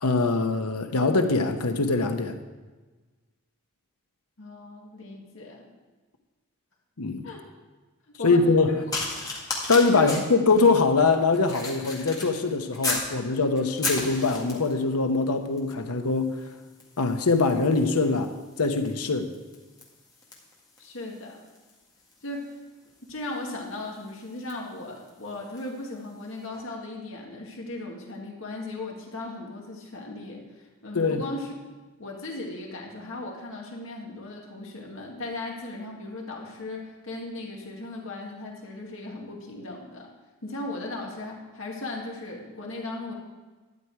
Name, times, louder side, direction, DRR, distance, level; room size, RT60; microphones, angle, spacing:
voice 1, 0.0-2.4 7.0-7.2 8.2-8.7 9.7-16.3 17.0-18.3 18.6-19.3 30.9-31.2, left 3 dB, 90° left, 7 dB, 1.0 m, -23 dB
voice 2, 4.4-5.6 7.2-7.4 8.2-8.4 9.9-10.2 20.8-21.4 22.2-22.5 23.1-30.4 30.8-31.5 32.0-40.1 40.4-43.1, left 2 dB, 60° left, -1 dB, 2.0 m, -37 dB
sound 1, 8.9-13.1 13.6-14.8 15.6-15.8 16.1-25.8 26.5-26.6, left 3 dB, 15° left, 1.8 m, -36 dB
12.5 x 9.6 x 4.8 m, 1.3 s
head